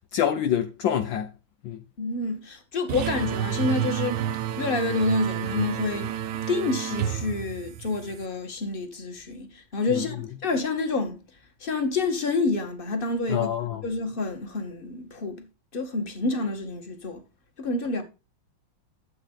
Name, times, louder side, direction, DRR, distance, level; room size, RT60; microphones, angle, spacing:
voice 1, 0.1-1.3 1.6-1.8 9.9-10.1 13.3-13.8, left 10 dB, 70° left, 1.5 m, -26 dB
voice 2, 2.0-4.2 4.6-6.1 6.5-11.2 11.6-15.5 15.7-17.2 17.6-18.0, left 3 dB, 25° left, 1.8 m, -28 dB
sound 1, 2.9-8.3, right 10 dB, 80° right, 1.6 m, -30 dB
12.0 x 7.8 x 3.9 m
omnidirectional pair, 2.3 m